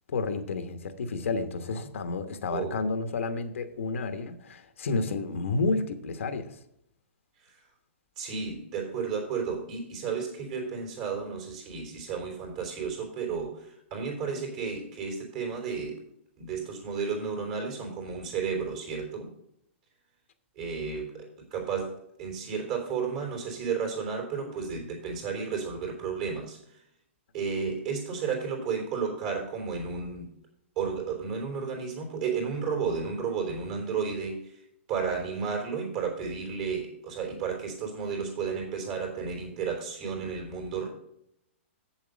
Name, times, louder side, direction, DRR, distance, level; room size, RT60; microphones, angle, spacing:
voice 1, 0.1-6.6, left 3 dB, 75° left, 8 dB, 1.1 m, -30 dB
voice 2, 8.2-16.0 16.4-19.3 20.6-26.8 27.3-30.3 30.8-34.6 34.9-40.9, right 5 dB, 35° right, 1 dB, 3.4 m, -32 dB
8.1 x 7.4 x 5.1 m, 0.76 s
hypercardioid pair, 170°, 7 cm